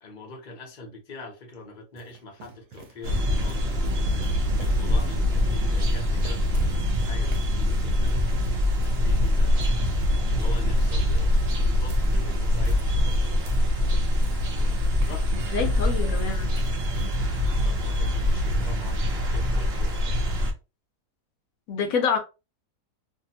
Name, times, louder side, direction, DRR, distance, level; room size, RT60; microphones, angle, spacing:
voice 1, 0.0-4.3 4.5-8.2 8.8-9.9 10.3-13.5 14.5-16.2 17.6-19.0 19.3-20.2, left 2 dB, 40° left, 0.8 m, -44 dB
sound 1, 1.5-17.6, right 3 dB, 70° right, 1.1 m, -44 dB
sound 2, 3.0-20.5, left 1 dB, 55° right, 0.8 m, -24 dB
voice 2, 15.3-16.5 21.7-22.2, left 5 dB, 70° left, 1.0 m, -27 dB
2.7 x 2.5 x 2.8 m
omnidirectional pair, 1.7 m